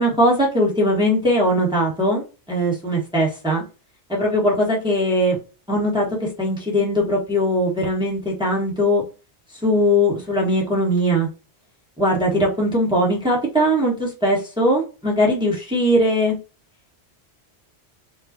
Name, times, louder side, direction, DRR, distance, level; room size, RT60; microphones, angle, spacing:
voice 1, 0.0-3.6 4.1-5.4 5.7-9.0 9.6-11.3 12.0-16.4, equal, 5° right, -3 dB, 1.2 m, -20 dB
4.8 x 2.3 x 2.6 m, 0.32 s
omnidirectional pair, 1.1 m